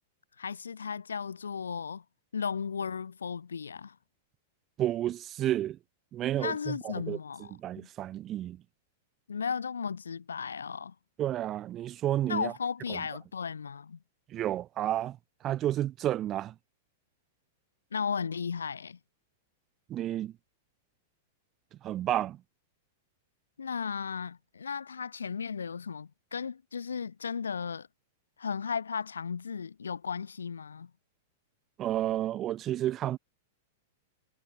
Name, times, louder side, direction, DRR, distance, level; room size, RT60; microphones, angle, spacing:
voice 1, 0.4-2.0 2.3-3.9 6.3-7.9 9.3-10.9 12.3-14.0 17.9-19.0 23.6-27.9 28.4-30.9, left 6 dB, 80° left, 1.7 m, -35 dB
voice 2, 4.8-5.8 6.1-7.2 7.6-8.6 11.2-12.5 12.9-13.0 14.3-15.2 15.4-16.5 19.9-20.3 21.8-22.4 31.8-33.2, right 12 dB, 30° right, 1.1 m, -31 dB
figure-of-eight pair, 100°, 0 cm